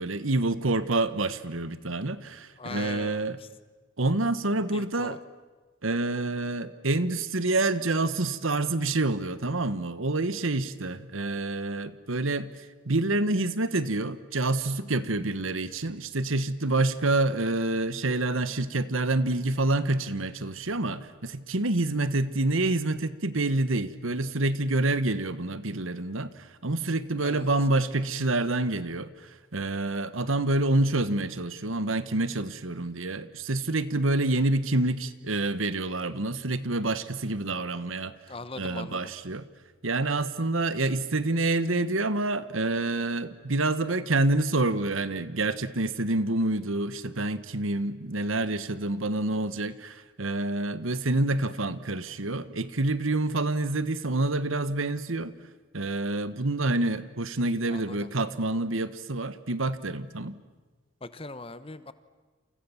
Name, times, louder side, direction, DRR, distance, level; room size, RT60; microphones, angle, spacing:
voice 1, 0.0-3.4 4.0-5.2 5.8-12.5 12.8-38.1 38.6-39.4 39.8-55.3 55.7-60.4, right 2 dB, 80° right, 14 dB, 1.4 m, -27 dB
voice 2, 2.6-3.6 4.7-5.2 27.2-27.5 38.3-39.0 57.7-58.1 61.0-61.9, left 3 dB, 25° left, 13 dB, 1.1 m, -41 dB
28.5 x 28.5 x 7.2 m, 1.3 s
head